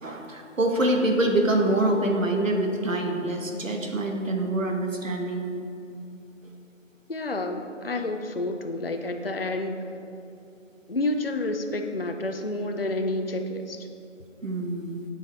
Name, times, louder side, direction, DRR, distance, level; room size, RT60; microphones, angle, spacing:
voice 1, 0.0-5.5 14.4-15.0, right 1 dB, 85° right, 3 dB, 1.2 m, -25 dB
voice 2, 7.1-9.8 10.9-13.9, left 2 dB, 50° left, 6 dB, 0.5 m, -29 dB
7.6 x 7.5 x 3.3 m, 2.7 s
figure-of-eight pair, 175°, 38 cm